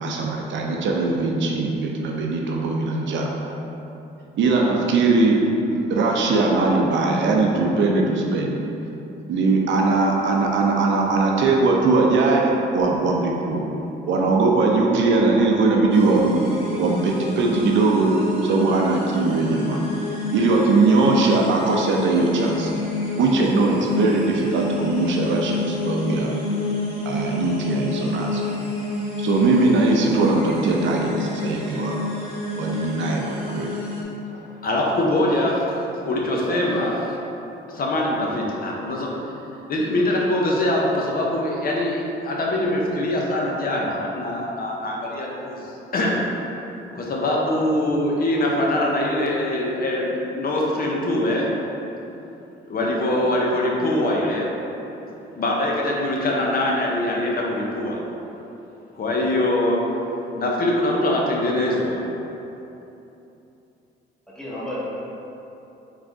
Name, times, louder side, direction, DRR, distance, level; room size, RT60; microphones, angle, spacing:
voice 1, 0.0-3.3 4.4-5.4 5.9-8.5 9.3-13.6 14.1-16.4 16.8-18.2 18.4-19.8 20.3-22.7 23.2-26.3 27.0-28.4 29.2-31.9 32.6-33.7, right 3 dB, 70° right, -1 dB, 0.6 m, -20 dB
sound 1, 15.9-34.0, left 2 dB, 30° left, 1.1 m, -29 dB
voice 2, 34.3-35.6 36.0-36.9 37.7-39.1 39.7-45.6 45.9-46.2 46.9-51.5 52.7-54.5 55.4-58.0 59.0-59.9 60.4-62.0, left 1 dB, 50° left, -2 dB, 0.7 m, -23 dB
voice 3, 35.0-35.7 36.2-37.0 64.3-64.8, equal, 5° left, -8 dB, 1.2 m, -34 dB
3.8 x 3.2 x 3.5 m, 3.0 s
cardioid pair, 90°, 20 cm